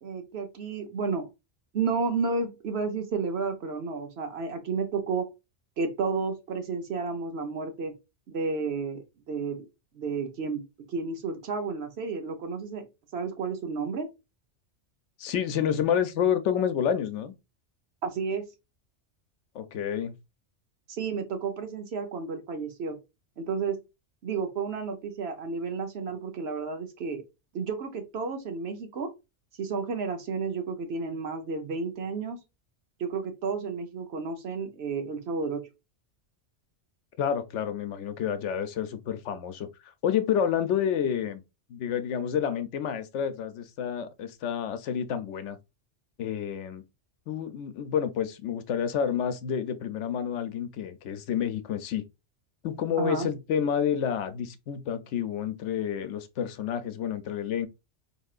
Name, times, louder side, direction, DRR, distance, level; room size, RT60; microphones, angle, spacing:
voice 1, 0.0-1.3 1.7-5.3 5.8-7.9 8.3-9.7 9.9-10.6 10.9-12.9 13.1-14.1 18.0-18.4 20.9-23.0 23.4-23.8 24.2-27.2 27.5-29.1 29.6-32.4 33.0-35.6 53.0-53.3, right 4 dB, 65° right, 1.0 m, -31 dB
voice 2, 15.2-17.3 19.5-20.1 37.2-41.4 41.7-45.6 46.2-46.8 47.3-52.0 52.6-57.7, left 8 dB, 80° left, 0.9 m, -29 dB
4.4 x 2.9 x 2.4 m
omnidirectional pair, 1.2 m